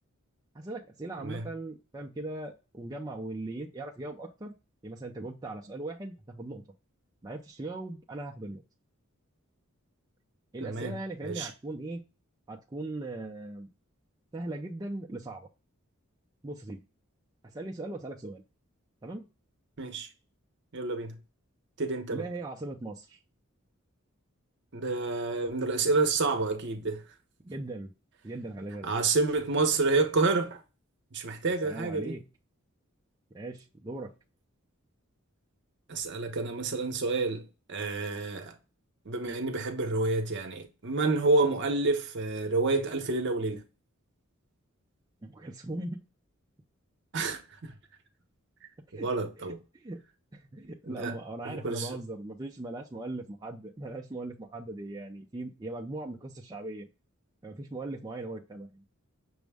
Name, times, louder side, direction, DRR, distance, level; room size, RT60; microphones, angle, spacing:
voice 1, 0.5-4.5 4.8-6.6 7.2-8.6 10.5-12.0 12.5-13.7 14.3-15.5 16.4-16.8 17.4-18.4 19.0-19.2 22.1-23.2 27.4-27.9 28.2-28.9 31.6-32.3 33.3-34.1 45.2-46.0 48.9-49.1 49.5-50.0 50.3-56.9 57.4-58.8, right 2 dB, 20° right, 0.4 m, -39 dB
voice 2, 10.6-10.9 11.2-11.5 19.8-20.1 20.7-21.2 21.8-22.2 24.7-27.0 28.8-30.6 31.1-32.1 35.9-38.6 39.1-43.6 47.1-47.7 49.0-49.6 50.9-51.1 51.4-52.0, right 3 dB, 55° right, 0.7 m, -29 dB
6.1 x 2.1 x 3.4 m
head